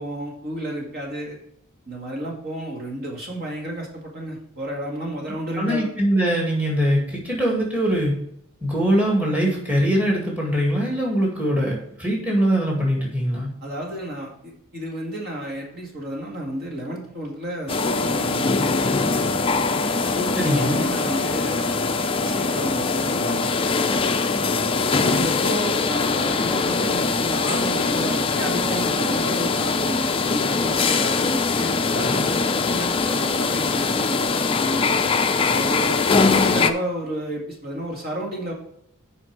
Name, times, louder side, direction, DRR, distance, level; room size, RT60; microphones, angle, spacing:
voice 1, 0.0-1.4 1.9-5.9 13.6-18.9 20.2-21.8 22.2-23.6 24.9-34.9 35.4-38.5, equal, 45° right, -1 dB, 2.0 m, -31 dB
voice 2, 5.6-8.1 8.6-13.5 20.4-20.8, equal, 5° right, -3 dB, 2.0 m, -22 dB
sound 1, 17.7-36.7, left 4 dB, 25° left, 0.4 m, -22 dB
8.5 x 5.3 x 4.7 m, 0.71 s
head